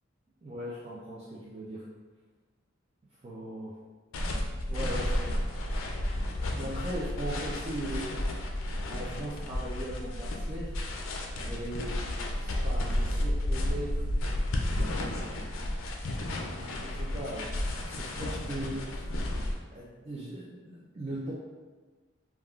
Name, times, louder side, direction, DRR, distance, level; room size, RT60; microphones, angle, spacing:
voice 1, 0.4-1.2 1.4-1.8 3.2-3.7 4.6-5.3 6.5-8.2 8.9-10.7 11.4-14.0 15.6-17.5 17.7-19.1 19.7-21.3, right 1 dB, 30° right, -8 dB, 0.4 m, -39 dB
sound 1, 4.1-19.5, left 1 dB, 90° left, 0.4 m, -32 dB
3.4 x 2.3 x 2.3 m, 1.4 s
head